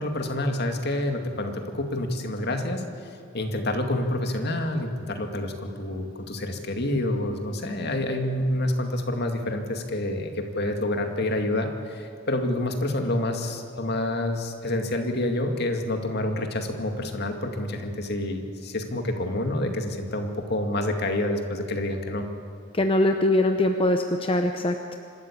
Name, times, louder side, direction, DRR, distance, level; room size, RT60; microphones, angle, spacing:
voice 1, 0.0-2.8 3.3-22.3, left 1 dB, 55° left, 4 dB, 2.2 m, -28 dB
voice 2, 22.7-24.7, left 1 dB, 25° left, 5 dB, 0.8 m, -22 dB
26.0 x 13.0 x 8.6 m, 2.6 s
head